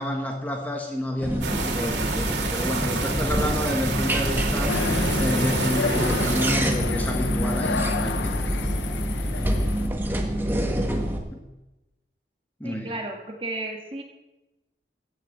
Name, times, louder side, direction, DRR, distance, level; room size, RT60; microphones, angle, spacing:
voice 1, 0.0-4.8 5.1-8.4 11.3-11.5 12.6-12.9, left 1 dB, 10° left, 2 dB, 1.2 m, -29 dB
sound 1, 1.2-11.2, equal, 10° right, 1.4 m, -27 dB
sound 2, 1.4-6.6, right 3 dB, 85° right, 2.6 m, -29 dB
sound 3, 4.7-9.9, left 4 dB, 85° left, 0.7 m, -30 dB
voice 2, 12.6-14.0, right 2 dB, 30° right, 2 dB, 1.9 m, -33 dB
15.0 x 6.8 x 8.7 m, 1.0 s
head